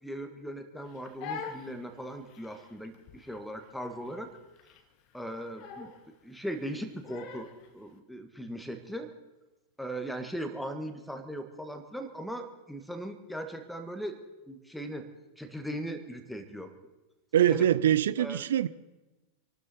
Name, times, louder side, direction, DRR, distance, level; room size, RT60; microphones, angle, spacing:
voice 1, 0.0-4.3 5.1-5.9 6.2-9.1 9.8-14.2 14.5-15.1 15.4-16.7 17.5-17.7 18.2-18.4, equal, ahead, 7 dB, 1.7 m, -39 dB
Crying sobbing, 0.8-7.7, left 5 dB, 40° left, 1.3 m, -45 dB
voice 2, 17.3-18.7, right 11 dB, 60° right, 17 dB, 0.6 m, -23 dB
27.0 x 12.0 x 4.3 m, 1.1 s
figure-of-eight pair, 90°, 0 cm